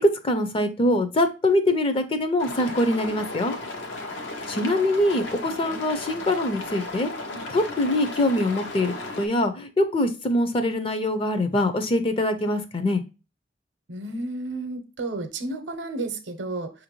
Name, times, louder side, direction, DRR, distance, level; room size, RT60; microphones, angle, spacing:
voice 1, 0.2-3.6 4.5-7.1 7.5-13.0, left 1 dB, 30° left, 8 dB, 0.4 m, -24 dB
sound 1, 2.4-9.3, left 2 dB, 85° left, 0.8 m, -35 dB
voice 2, 13.9-16.7, right 2 dB, 65° right, 8 dB, 0.7 m, -32 dB
5.4 x 2.5 x 2.9 m, 0.30 s
head